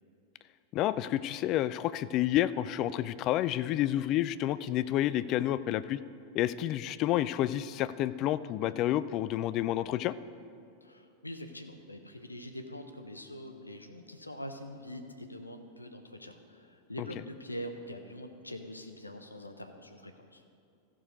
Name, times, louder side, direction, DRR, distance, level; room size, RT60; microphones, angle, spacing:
voice 1, 0.7-6.0 6.3-10.1, left 13 dB, 40° left, 16 dB, 0.3 m, -29 dB
voice 2, 10.8-20.4, equal, 85° left, 7 dB, 0.7 m, -44 dB
14.0 x 6.2 x 5.2 m, 2.5 s
figure-of-eight pair, 90°, 0 cm